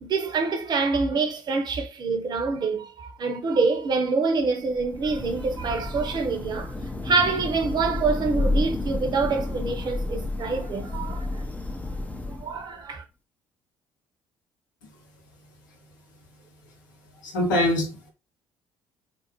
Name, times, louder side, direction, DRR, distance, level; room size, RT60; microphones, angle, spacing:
voice 1, 0.0-6.7 7.0-11.4 12.3-13.0, right 4 dB, 45° right, 0.7 m, -26 dB
Thunder / Rain, 4.7-12.7, left 2 dB, 15° left, 0.5 m, -31 dB
voice 2, 17.2-18.1, left 1 dB, 80° left, 0.7 m, -24 dB
2.5 x 2.0 x 2.9 m
figure-of-eight pair, 50°, 10 cm